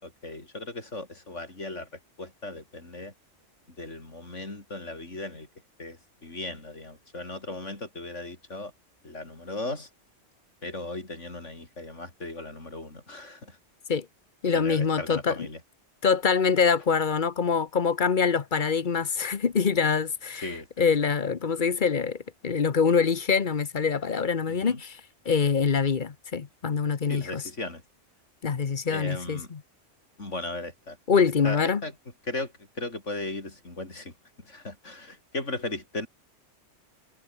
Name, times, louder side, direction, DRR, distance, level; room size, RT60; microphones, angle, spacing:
voice 1, 0.0-1.9 2.2-3.1 3.8-5.5 5.8-8.7 9.0-9.9 10.6-13.6 14.5-15.6 20.4-20.7 24.5-24.8 27.1-27.8 28.9-29.5 30.2-31.0 31.4-31.9 32.3-34.1 34.4-36.1, left 2 dB, 75° left, 5.4 m, -37 dB
voice 2, 14.4-15.5 16.0-27.4 28.4-29.6 31.1-31.8, left 6 dB, 45° left, 1.1 m, -25 dB
omnidirectional pair, 1.3 m